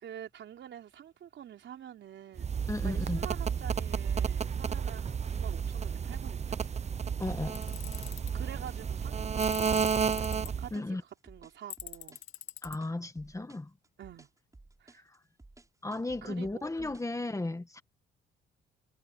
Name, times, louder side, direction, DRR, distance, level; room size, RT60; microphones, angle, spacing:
voice 1, 0.0-6.6 8.3-12.2 14.0-14.3 14.8-15.0 16.2-17.1, right 10 dB, 70° right, 4.1 m, -47 dB
sound 1, 2.4-10.7, right 6 dB, 35° right, 0.8 m, -32 dB
voice 2, 2.7-3.3 7.2-7.6 10.7-11.0 12.6-13.7 14.9-15.2 15.8-17.8, left 2 dB, 15° left, 1.8 m, -35 dB
sound 2, 6.6-17.2, right 2 dB, 15° right, 7.5 m, -56 dB
Tools, 7.6-8.3 9.4-10.5 11.7-12.8, left 12 dB, 80° left, 2.0 m, -43 dB
cardioid pair, 90°, 20 cm